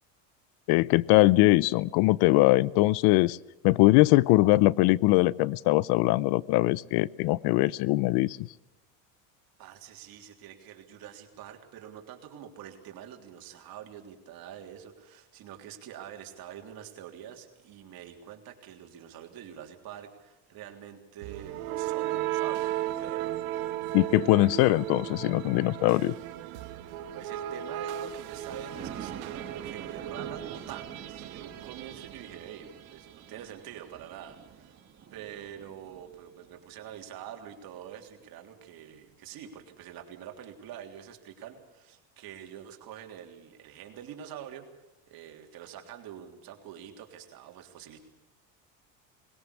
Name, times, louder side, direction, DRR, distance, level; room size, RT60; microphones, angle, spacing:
voice 1, 0.7-3.4 3.6-8.5 23.9-26.1, left 19 dB, 65° left, 23 dB, 0.6 m, -22 dB
voice 2, 9.6-23.4 27.1-34.8 35.1-44.7 45.1-48.0, right 10 dB, 60° right, 4 dB, 3.5 m, -46 dB
sound 1, 21.2-33.1, right 13 dB, 85° right, 1.9 m, -35 dB
Thunder, 28.3-38.1 38.6-38.7 39.1-39.2 39.5-39.6, right 8 dB, 35° right, 1.7 m, -47 dB
20.5 x 18.0 x 8.5 m, 0.99 s
supercardioid pair, 110°, 41 cm